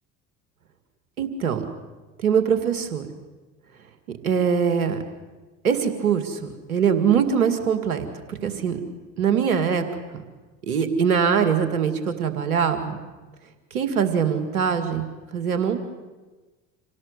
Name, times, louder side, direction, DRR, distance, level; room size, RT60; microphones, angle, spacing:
voice 1, 1.2-1.6 2.2-3.1 4.2-5.0 5.6-8.8 9.2-9.8 10.7-13.0 13.7-15.1 15.3-15.9, right 7 dB, 90° right, 8 dB, 2.2 m, -22 dB
26.5 x 17.5 x 8.2 m, 1.2 s
hypercardioid pair, 60°, 42 cm